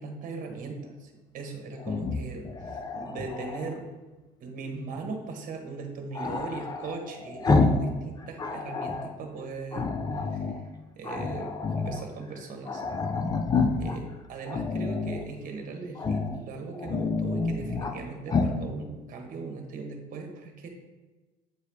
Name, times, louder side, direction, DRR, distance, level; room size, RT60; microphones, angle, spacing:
voice 1, 0.0-3.9 4.4-9.9 10.3-10.6 10.9-12.8 13.8-20.7, right 4 dB, 55° right, 3 dB, 1.2 m, -39 dB
Growling, 1.8-3.8 6.1-7.9 8.2-9.1 9.7-10.6 11.0-12.0 12.4-12.5 12.7-14.0 14.5-15.2 16.0-16.4 16.7-18.0 18.3-18.6, left 3 dB, 25° left, 0.5 m, -28 dB
8.1 x 4.6 x 3.5 m, 1.2 s
cardioid pair, 140°, 17 cm